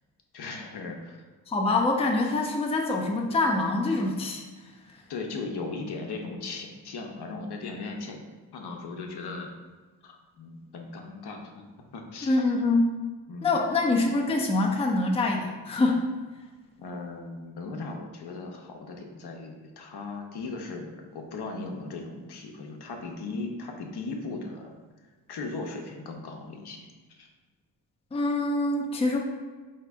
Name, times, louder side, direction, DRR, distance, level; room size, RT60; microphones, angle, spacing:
voice 1, 0.3-1.2 5.1-8.2 8.5-9.5 10.0-11.6 11.9-12.4 13.3-13.5 16.8-24.7 25.0-26.9 27.2-27.3, left 3 dB, 60° left, 2 dB, 0.8 m, -38 dB
voice 2, 1.5-5.0 12.2-13.0 13.4-16.1 28.1-29.2, left 2 dB, 15° left, 1 dB, 0.5 m, -25 dB
4.0 x 2.8 x 3.4 m, 1.3 s
cardioid pair, 60°, 45 cm